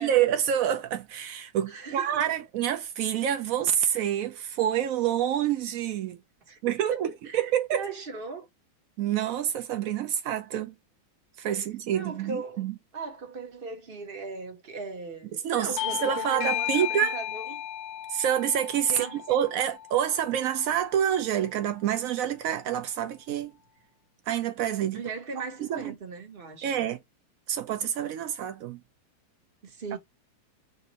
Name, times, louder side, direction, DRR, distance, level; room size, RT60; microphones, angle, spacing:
voice 1, 0.0-6.2 6.6-7.1 7.3-7.9 9.0-10.7 11.4-12.7 15.3-17.2 18.1-23.5 24.3-25.0 25.4-25.9 26.6-27.0 27.5-28.8 29.9-30.0, right 10 dB, 80° right, 0.7 m, -27 dB
voice 2, 1.7-2.2 6.5-7.4 7.7-8.5 11.9-12.7 12.9-17.6 18.9-19.2 24.9-26.7 29.6-30.0, right 4 dB, 30° right, 1.3 m, -38 dB
Bell / Doorbell, 15.8-20.8, left 12 dB, 75° left, 1.2 m, -34 dB
5.3 x 2.6 x 2.8 m
omnidirectional pair, 2.1 m